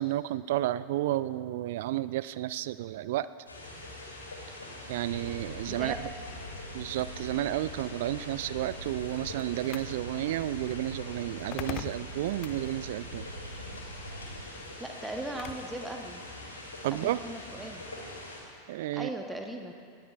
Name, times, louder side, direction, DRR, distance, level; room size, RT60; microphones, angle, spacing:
voice 1, 0.0-3.3 4.9-5.9 6.7-13.3 16.8-17.2 18.7-19.1, right 14 dB, 55° right, 15 dB, 0.3 m, -31 dB
sound 1, 3.5-18.4, left 2 dB, 80° left, 2.8 m, -44 dB
sound 2, 5.2-14.5, right 1 dB, 85° right, 1.3 m, -44 dB
voice 2, 5.7-6.0 14.8-16.2 16.9-17.8 18.9-19.7, right 1 dB, 5° right, 3 dB, 1.1 m, -38 dB
sound 3, 8.5-15.8, left 13 dB, 40° left, 0.4 m, -46 dB
19.0 x 13.0 x 2.5 m, 2.3 s
figure-of-eight pair, 90°, 0 cm